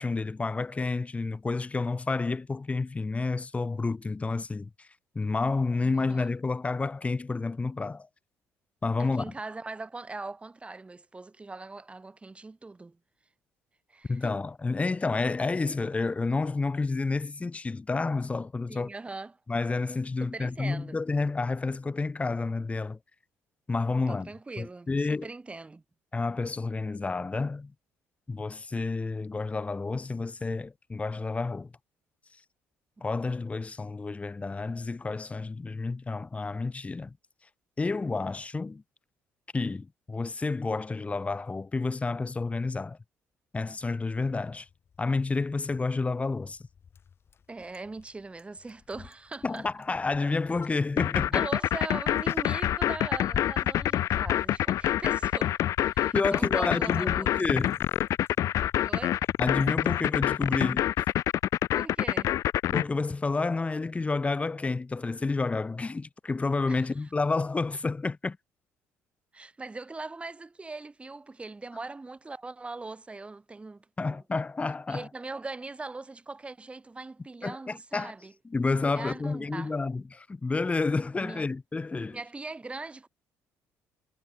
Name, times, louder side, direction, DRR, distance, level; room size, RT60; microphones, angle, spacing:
voice 1, 0.0-4.9 5.1-8.1 8.8-9.3 14.1-18.9 19.5-23.0 23.7-24.3 24.6-25.3 26.1-27.7 28.3-31.7 33.0-37.1 37.8-38.8 39.5-43.0 43.5-44.7 45.0-46.6 49.4-51.5 56.1-57.8 59.4-60.9 62.7-68.4 74.0-75.1 77.4-78.1 78.5-82.2, left 3 dB, 25° left, 2.2 m, -30 dB
voice 2, 5.8-6.3 9.0-13.0 13.9-14.3 18.7-19.4 20.2-21.0 24.1-25.8 33.0-33.1 47.5-49.7 51.3-55.6 55.9-57.3 58.8-59.2 61.7-62.3 66.7-66.8 69.3-74.2 74.9-78.3 78.9-79.7 81.2-81.5 82.1-83.1, right 3 dB, 20° right, 4.8 m, -41 dB
Bicycle, 43.8-60.1, left 7 dB, 45° left, 3.6 m, -48 dB
sound 1, 51.0-62.8, left 12 dB, 70° left, 0.8 m, -26 dB
cardioid pair, 85°, 6 cm